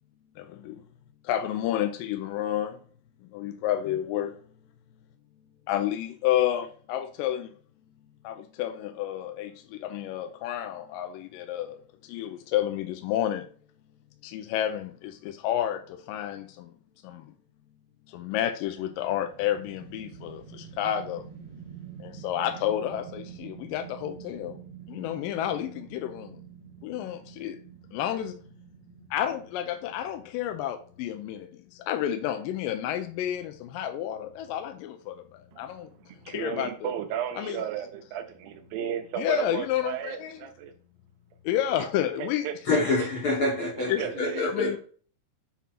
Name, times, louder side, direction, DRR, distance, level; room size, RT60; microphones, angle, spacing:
voice 1, 0.4-0.8 1.2-2.8 3.3-4.4 5.7-7.5 8.2-13.5 14.2-16.7 17.0-17.3 18.1-21.3 22.0-24.6 24.9-26.4 26.8-27.6 27.9-28.4 29.1-35.9 36.3-36.9 37.4-37.6 39.2-40.4 41.4-42.8 43.9-44.0 44.4-44.8, left 11 dB, 80° left, 2.2 m, -30 dB
sound 1, 18.6-30.9, right 8 dB, 55° right, 2.8 m, -47 dB
voice 2, 36.0-40.7 42.2-42.5 43.0-43.1 43.8-44.4, right 9 dB, 85° right, 2.5 m, -34 dB
voice 3, 42.7-44.8, left 2 dB, 55° left, 1.6 m, -26 dB
7.2 x 2.7 x 5.8 m
omnidirectional pair, 4.0 m